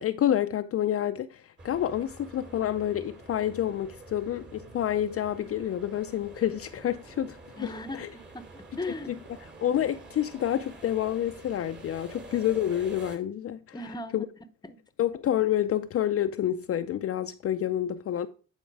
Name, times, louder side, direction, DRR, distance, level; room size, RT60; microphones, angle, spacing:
voice 1, 0.0-7.7 8.0-8.1 9.6-13.8 14.1-14.3 15.0-18.3, left 11 dB, 50° left, 0.5 m, -28 dB
sound 1, 1.6-13.2, right 2 dB, 35° right, 2.6 m, -47 dB
voice 2, 7.6-9.1 13.7-14.3 14.6-14.8, left 2 dB, 15° left, 0.9 m, -38 dB
9.2 x 4.3 x 4.7 m
cardioid pair, 90°, 30 cm